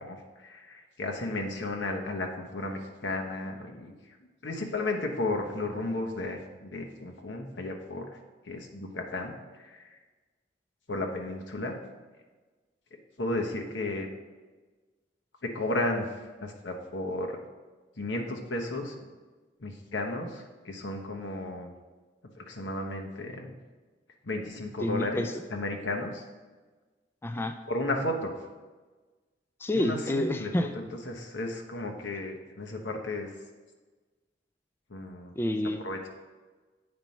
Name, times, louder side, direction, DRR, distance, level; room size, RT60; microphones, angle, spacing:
voice 1, 0.0-3.9 4.4-8.1 8.5-9.9 10.9-11.7 13.2-14.1 15.4-16.1 16.4-17.4 18.0-18.9 19.6-21.7 22.4-23.5 24.2-25.2 25.5-26.2 27.7-28.3 29.7-33.3 34.9-35.3 35.8-36.1, left 2 dB, 85° left, 2 dB, 1.1 m, -33 dB
voice 2, 24.8-25.3 27.2-27.5 29.6-30.7 35.4-35.8, left 1 dB, 15° left, 7 dB, 0.3 m, -28 dB
8.9 x 4.5 x 5.4 m, 1.3 s
head